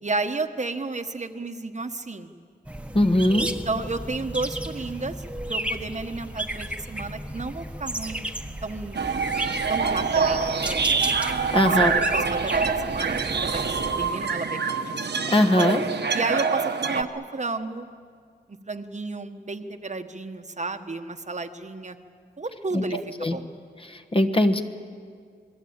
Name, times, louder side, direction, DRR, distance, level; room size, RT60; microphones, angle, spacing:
voice 1, 0.0-2.3 3.6-5.1 5.5-8.2 8.6-9.0 9.7-11.1 11.7-13.6 14.0-14.8 16.1-17.9 18.7-22.0 22.4-23.5, right 3 dB, 40° right, 7 dB, 1.2 m, -32 dB
sound 1, 2.6-14.1, right 1 dB, 5° right, 1.2 m, -34 dB
voice 2, 2.9-3.5 11.5-11.9 15.3-15.8 22.7-22.8 23.2-23.4 24.1-24.6, left 1 dB, 30° left, 6 dB, 1.3 m, -20 dB
sound 2, 8.9-17.0, right 5 dB, 65° right, 1.3 m, -25 dB
27.5 x 21.5 x 8.8 m, 2.1 s
wide cardioid pair, 125°, 19 cm